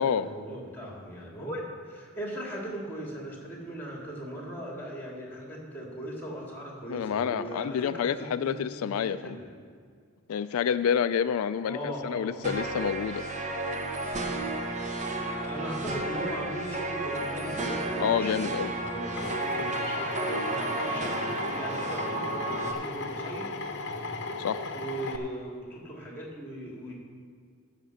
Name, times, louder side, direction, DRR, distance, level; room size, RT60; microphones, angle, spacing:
voice 1, 0.0-9.5 11.6-12.8 15.4-23.4 23.9-24.0 24.7-26.9, right 1 dB, 10° left, -2 dB, 2.3 m, -39 dB
voice 2, 6.9-9.4 10.3-13.3 18.0-18.7 24.4-24.6, left 8 dB, 85° left, 12 dB, 0.3 m, -28 dB
sound 1, 12.4-22.7, right 2 dB, 35° right, 1.0 m, -32 dB
Drill, 19.2-25.2, left 3 dB, 55° left, 0.8 m, -36 dB
14.5 x 5.8 x 6.4 m, 2.1 s
head